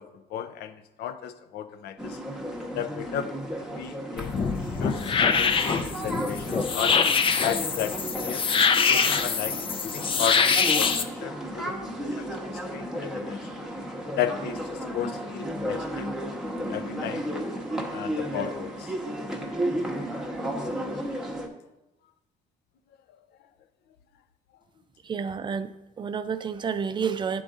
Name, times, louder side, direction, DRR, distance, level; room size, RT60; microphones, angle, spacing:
voice 1, 0.0-2.2 2.7-3.3 3.6-7.0 7.4-8.5 8.8-13.4 14.2-16.1 16.7-17.3 17.9-18.9, left 9 dB, 75° left, 9 dB, 0.6 m, -34 dB
sound 1, 2.0-21.5, equal, 5° right, 0.9 m, -33 dB
sound 2, 4.2-11.0, left 5 dB, 30° left, 0.5 m, -24 dB
voice 2, 25.0-27.4, right 6 dB, 30° right, 12 dB, 0.4 m, -30 dB
9.7 x 3.9 x 3.6 m, 0.96 s
cardioid pair, 110°, 17 cm